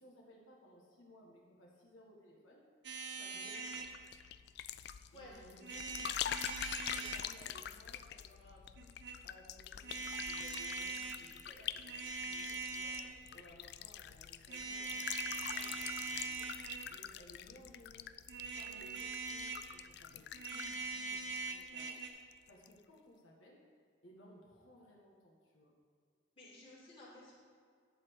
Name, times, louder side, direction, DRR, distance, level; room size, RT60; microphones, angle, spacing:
voice 1, 0.0-2.6 3.2-3.8 5.1-9.0 9.2-18.1 18.5-23.6 24.0-25.7, equal, 85° left, -3 dB, 1.7 m, -60 dB
sound 1, 2.8-3.9 5.6-7.2 8.8-9.2 9.8-11.2 11.8-13.2 14.5-16.9 18.3-19.7 20.3-22.1, right 4 dB, 60° right, 1.0 m, -42 dB
sound 2, 3.7-22.0 22.3-22.7, left 10 dB, 55° left, 0.3 m, -45 dB
voice 2, 26.4-27.3, left 1 dB, 25° left, -6 dB, 2.7 m, -54 dB
11.0 x 4.4 x 7.8 m, 2.2 s
head